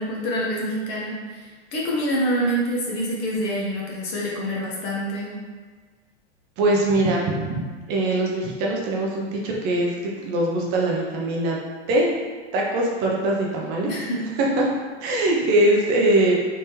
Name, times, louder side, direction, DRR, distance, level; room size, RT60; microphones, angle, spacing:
voice 1, 0.0-5.5 13.9-14.3, equal, 30° left, -3 dB, 0.6 m, -26 dB
voice 2, 6.6-7.6 7.9-11.6 11.9-12.1 12.5-13.9 14.4-14.6 15.0-16.3, right 1 dB, 30° right, -2 dB, 0.5 m, -22 dB
3.4 x 3.2 x 2.8 m, 1.4 s
supercardioid pair, 140°, 35 cm